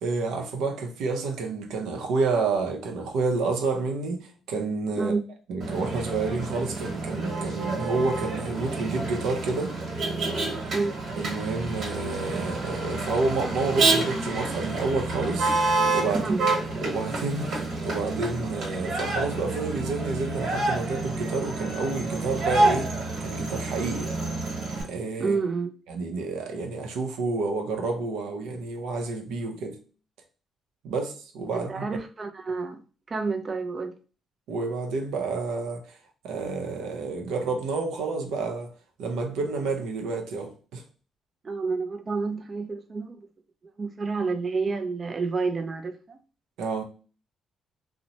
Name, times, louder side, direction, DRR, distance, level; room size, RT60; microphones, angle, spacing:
voice 1, 0.0-5.1 5.5-9.7 11.1-16.3 16.8-23.0 23.2-24.1 24.8-25.4 25.9-29.8 30.8-31.9 34.5-36.0 36.2-38.7 39.0-40.8 46.6-46.8, right 3 dB, 85° right, 0.5 m, -29 dB
Motor vehicle (road), 5.6-24.8, right 2 dB, 65° right, 1.2 m, -28 dB
voice 2, 16.1-16.5 25.2-25.7 31.5-32.8 33.1-33.9 41.4-43.3 43.8-46.2, right 4 dB, 35° right, 0.3 m, -29 dB
2.9 x 2.0 x 2.7 m
cardioid pair, 90°, 0 cm